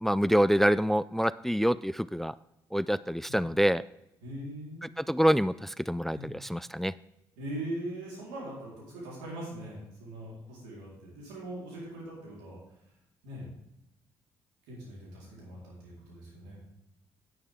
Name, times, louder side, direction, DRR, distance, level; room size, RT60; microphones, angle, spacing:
voice 1, 0.0-2.3 2.7-3.8 5.0-6.9, equal, 5° left, 18 dB, 0.3 m, -26 dB
voice 2, 4.2-5.0 6.1-6.3 7.4-12.6 13.2-13.5 14.7-16.6, right 1 dB, 90° right, -4 dB, 4.0 m, -41 dB
9.9 x 9.0 x 3.6 m, 0.86 s
hypercardioid pair, 50°, 10 cm